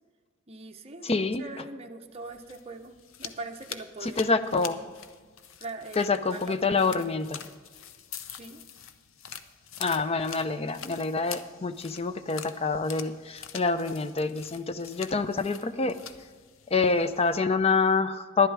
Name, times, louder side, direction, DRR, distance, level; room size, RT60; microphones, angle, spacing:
voice 1, 0.5-2.9 3.2-4.9 5.6-7.0 8.4-8.6, right 3 dB, 30° right, 4 dB, 0.7 m, -42 dB
voice 2, 1.0-1.4 4.0-4.8 6.0-7.4 9.8-16.0 16.7-18.5, left 4 dB, 30° left, 11 dB, 0.5 m, -26 dB
sound 1, 2.2-17.4, left 8 dB, 80° left, 0.7 m, -45 dB
11.0 x 11.0 x 4.8 m, 1.5 s
head